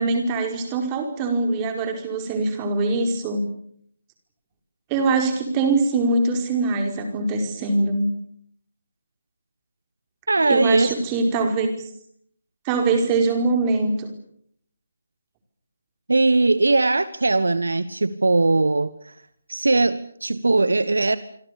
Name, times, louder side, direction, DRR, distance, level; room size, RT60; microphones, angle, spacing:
voice 1, 0.0-3.4 4.9-8.1 10.5-11.9 12.6-14.1, right 3 dB, 20° right, 5 dB, 4.9 m, -23 dB
voice 2, 10.3-10.9 16.1-19.1 19.5-21.2, right 3 dB, 65° right, 15 dB, 1.3 m, -20 dB
26.5 x 26.5 x 6.9 m, 0.66 s
figure-of-eight pair, 150°, 0 cm